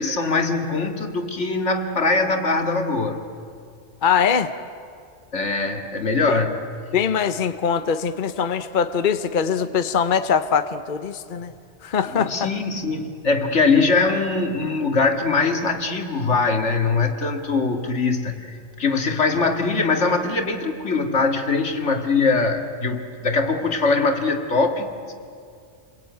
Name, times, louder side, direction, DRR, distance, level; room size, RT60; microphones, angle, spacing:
voice 1, 0.0-3.2 5.3-6.7 12.1-25.0, left 3 dB, 80° left, 5 dB, 2.4 m, -22 dB
voice 2, 4.0-4.5 6.3-6.4 6.9-11.5 11.8-12.5, left 7 dB, 50° left, 10 dB, 0.9 m, -22 dB
28.5 x 22.0 x 9.4 m, 2.3 s
omnidirectional pair, 1.2 m